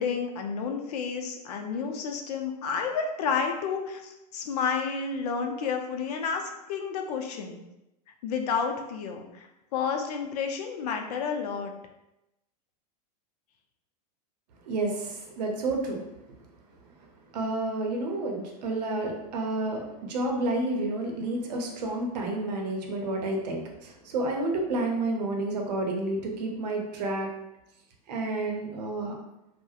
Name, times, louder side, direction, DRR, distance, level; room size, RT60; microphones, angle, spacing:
voice 1, 0.0-6.4 6.7-7.6 8.2-9.5 9.7-11.7, left 6 dB, 70° left, 4 dB, 0.5 m, -30 dB
voice 2, 14.7-16.0 17.3-27.3 28.1-29.2, right 2 dB, 80° right, 1 dB, 0.7 m, -30 dB
2.6 x 2.1 x 2.3 m, 0.91 s
supercardioid pair, 135°, 21 cm